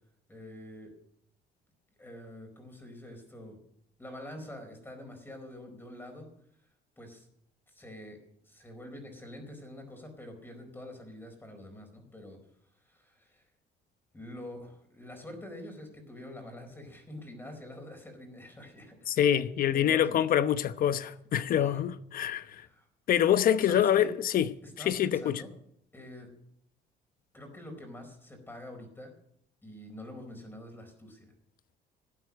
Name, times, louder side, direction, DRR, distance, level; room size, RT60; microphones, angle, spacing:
voice 1, 0.3-0.9 2.0-3.6 4.0-6.3 7.0-7.3 7.7-8.2 8.4-12.4 12.9-13.4 14.1-20.4 21.5-21.8 22.5-22.9 23.6-24.1 24.6-25.5 25.9-26.3 27.3-29.1 29.6-31.3, left 1 dB, 10° left, 4.5 m, -46 dB
voice 2, 19.1-22.7 23.1-24.5 24.8-25.4, left 10 dB, 55° left, 0.9 m, -26 dB
12.5 x 8.9 x 9.7 m
cardioid pair, 110°, 17 cm